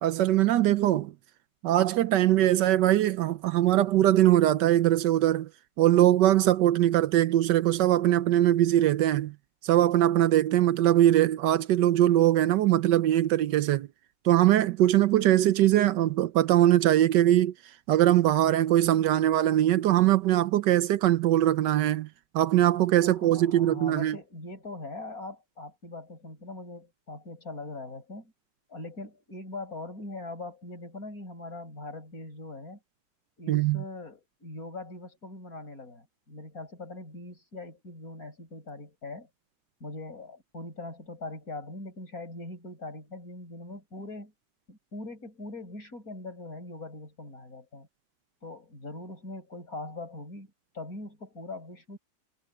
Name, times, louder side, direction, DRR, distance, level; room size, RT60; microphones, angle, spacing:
voice 1, 0.0-1.1 1.6-5.5 5.8-9.3 9.6-13.9 14.2-17.5 17.9-22.1 22.3-24.2 33.5-33.8, right 13 dB, 75° right, 1.3 m, -22 dB
voice 2, 15.2-15.6 23.0-28.3 28.7-32.8 33.4-39.3 39.8-44.3 44.7-47.9 48.4-52.0, left 2 dB, 50° left, 8.0 m, -41 dB
omnidirectional pair, 1.9 m